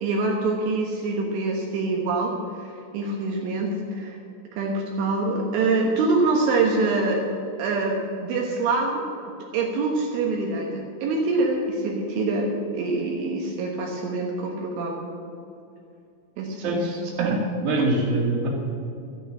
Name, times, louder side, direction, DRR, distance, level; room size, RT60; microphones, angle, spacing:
voice 1, 0.0-4.2 4.5-7.3 7.6-9.0 9.5-15.1 16.4-16.8 17.2-17.4, right 3 dB, 75° right, 0 dB, 3.7 m, -25 dB
voice 2, 16.6-16.9 17.3-17.4 17.6-18.5, right 2 dB, 45° right, -2 dB, 3.6 m, -24 dB
12.0 x 9.6 x 8.4 m, 2.5 s
omnidirectional pair, 5.7 m